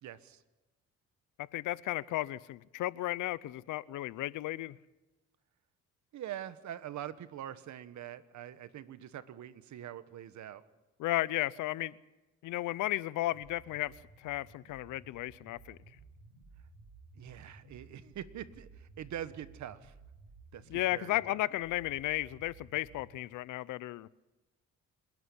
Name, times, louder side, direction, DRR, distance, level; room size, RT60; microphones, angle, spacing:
voice 1, 0.0-0.4 6.1-10.6 17.1-19.9 20.5-21.4, right 11 dB, 70° right, 13 dB, 1.3 m, -44 dB
voice 2, 1.5-4.8 11.0-11.9 12.4-13.9 14.2-15.8 20.7-24.1, left 16 dB, 85° left, 20 dB, 0.7 m, -34 dB
sound 1, 13.3-23.2, right 3 dB, 50° right, 3.6 m, -56 dB
27.5 x 11.0 x 9.9 m, 1.1 s
cardioid pair, 90°, 30 cm